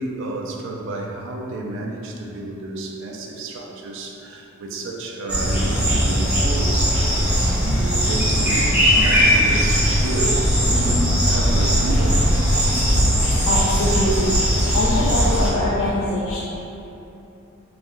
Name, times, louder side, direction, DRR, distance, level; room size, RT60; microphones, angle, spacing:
voice 1, 0.0-6.9 7.3-10.4 10.7-12.4 13.4-13.5, right 2 dB, 60° right, 0 dB, 0.3 m, -30 dB
sound 1, 5.3-15.5, equal, 5° right, 0.6 m, -19 dB
voice 2, 12.5-13.0 13.4-16.4, left 1 dB, 60° left, -7 dB, 0.3 m, -24 dB
2.5 x 2.2 x 3.0 m, 2.9 s
head